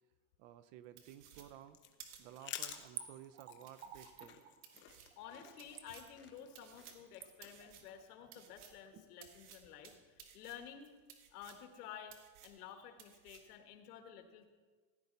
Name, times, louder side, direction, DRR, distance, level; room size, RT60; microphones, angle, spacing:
voice 1, 0.4-1.8 2.2-4.4, right 11 dB, 55° right, 14 dB, 0.7 m, -55 dB
sound 1, 1.0-7.9, left 10 dB, 25° left, 0.7 m, -52 dB
sound 2, 1.0-2.8 3.2-3.3 3.6-8.9 9.2-11.8 12.1-12.7 13.0-13.6, right 8 dB, 85° right, 1.9 m, -58 dB
Splash splatter / Trickle dribble, 2.6-9.1 9.4-9.5, right 9 dB, 20° right, 0.4 m, -52 dB
voice 2, 5.2-10.9 11.3-12.1 12.4-14.5, left 8 dB, 85° left, 6 dB, 1.8 m, -52 dB
16.0 x 10.0 x 4.1 m, 1.4 s
supercardioid pair, 170°, 45 cm